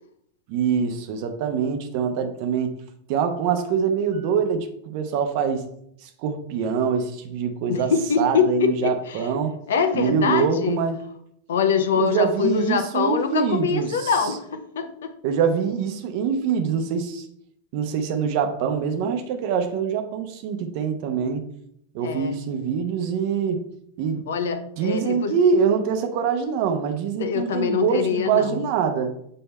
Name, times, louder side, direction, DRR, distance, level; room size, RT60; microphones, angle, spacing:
voice 1, 0.5-2.7 3.1-5.6 6.0-7.9 8.2-9.6 9.9-11.0 11.9-14.1 15.2-17.3 17.7-21.4 21.9-23.6 24.0-24.3 24.8-29.1, right 6 dB, 45° right, 6 dB, 0.9 m, -24 dB
voice 2, 7.7-9.3 9.7-10.8 11.5-15.1 22.0-22.4 24.3-25.3 27.2-28.6, left 6 dB, 60° left, 9 dB, 0.8 m, -24 dB
7.7 x 3.3 x 4.3 m, 0.71 s
figure-of-eight pair, 90°, 0 cm